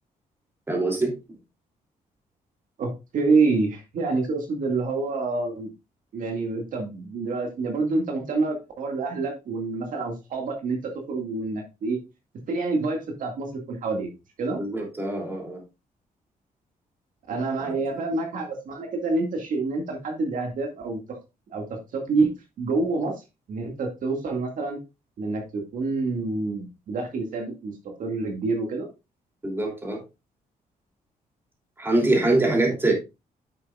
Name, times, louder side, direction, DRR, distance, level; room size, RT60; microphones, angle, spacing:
voice 1, 0.7-1.1 14.6-15.6 17.6-17.7 29.4-30.0 31.8-32.9, right 2 dB, 15° right, 0 dB, 2.8 m, -24 dB
voice 2, 2.8-5.7 6.1-12.0 12.5-14.1 14.4-14.6 17.3-21.2 21.5-22.3 22.6-23.2 23.5-24.8 25.2-27.7 28.0-28.9 32.8-32.9, right 3 dB, 65° right, 2 dB, 2.0 m, -27 dB
9.6 x 7.6 x 2.4 m, 0.25 s
cardioid pair, 155°, 15 cm